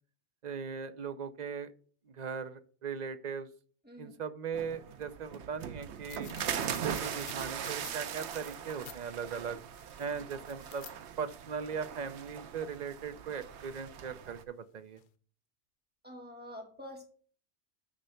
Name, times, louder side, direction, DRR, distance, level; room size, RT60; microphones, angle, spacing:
voice 1, 0.4-1.7 2.1-3.5 4.0-6.3 6.6-9.6 10.0-10.9 11.2-15.0, right 6 dB, 45° right, 10 dB, 0.7 m, -39 dB
sound 1, 4.5-14.4, right 8 dB, 80° right, 1.0 m, -40 dB
sound 2, 6.1-9.0 9.6-10.9 13.4-13.7 15.0-15.1, left 9 dB, 55° left, 0.7 m, -51 dB
voice 2, 16.0-17.0, left 1 dB, 10° right, 1 dB, 2.0 m, -46 dB
9.9 x 3.4 x 6.5 m, 0.44 s
omnidirectional pair, 1.1 m